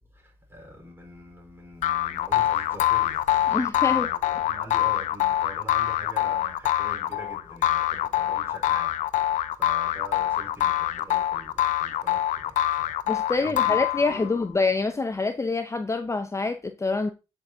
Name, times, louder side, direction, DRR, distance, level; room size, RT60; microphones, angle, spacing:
voice 1, 0.1-13.1 13.4-14.5, equal, 20° right, 4.1 m, -44 dB
sound 1, 1.8-14.4, left 13 dB, 75° left, 0.4 m, -25 dB
voice 2, 3.5-4.1 13.1-17.1, left 3 dB, 20° left, 0.6 m, -26 dB
8.1 x 5.1 x 2.7 m
supercardioid pair, 50°, 13 cm